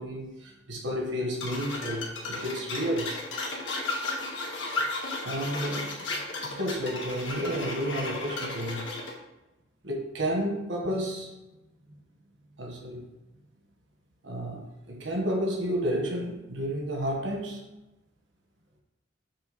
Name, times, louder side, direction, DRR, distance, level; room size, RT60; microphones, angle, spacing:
voice 1, 0.0-3.1 5.2-6.0 6.4-8.8 9.8-11.3 12.6-13.0 14.2-17.6, equal, 85° right, 0 dB, 1.3 m, -31 dB
sound 1, 1.4-9.1, left 2 dB, 85° left, 1.5 m, -34 dB
7.4 x 3.2 x 5.2 m, 0.98 s
head